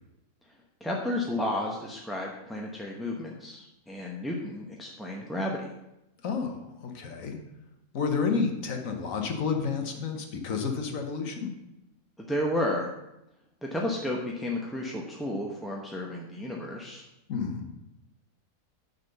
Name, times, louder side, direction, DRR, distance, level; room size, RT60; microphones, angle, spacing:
voice 1, 0.8-5.7 12.2-12.9 13.6-17.0, left 1 dB, ahead, -2 dB, 0.6 m, -32 dB
voice 2, 6.2-7.4 7.9-11.5 17.3-17.7, left 5 dB, 70° left, 4 dB, 1.5 m, -30 dB
9.4 x 4.1 x 6.7 m, 0.91 s
omnidirectional pair, 1.5 m